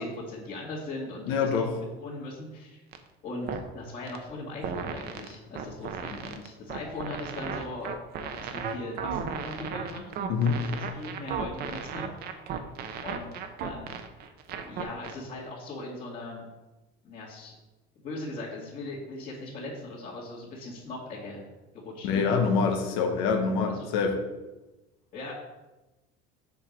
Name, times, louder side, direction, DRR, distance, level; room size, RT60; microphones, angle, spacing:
voice 1, 0.0-1.6 2.0-2.8 3.2-3.5 3.7-7.9 8.2-10.1 10.8-12.4 13.0-14.0 14.6-16.5 17.0-17.6 18.0-21.4 21.7-22.2 23.7-23.9 25.1-25.3, left 2 dB, 40° left, -8 dB, 2.1 m, -39 dB
voice 2, 1.3-1.7 10.3-10.6 22.0-24.1, left 5 dB, 75° left, 3 dB, 1.1 m, -25 dB
sound 1, 2.9-3.0 3.5-3.7 4.1-4.2 4.6-15.2, right 7 dB, 50° right, 0.8 m, -35 dB
6.8 x 4.7 x 5.3 m, 1.1 s
cardioid pair, 135°, 21 cm